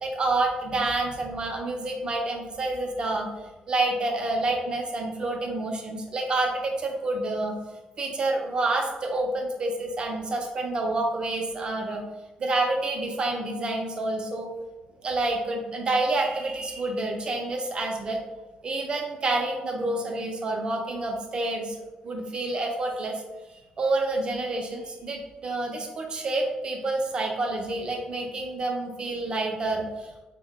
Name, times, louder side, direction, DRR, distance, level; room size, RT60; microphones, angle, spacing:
voice 1, 0.0-3.3 3.7-7.6 8.0-12.0 12.4-14.5 15.0-18.2 18.6-21.8 22.0-23.2 23.5-30.2, right 2 dB, 35° right, 2 dB, 0.6 m, -28 dB
3.7 x 2.1 x 3.5 m, 1.1 s
cardioid pair, 120°, 3 cm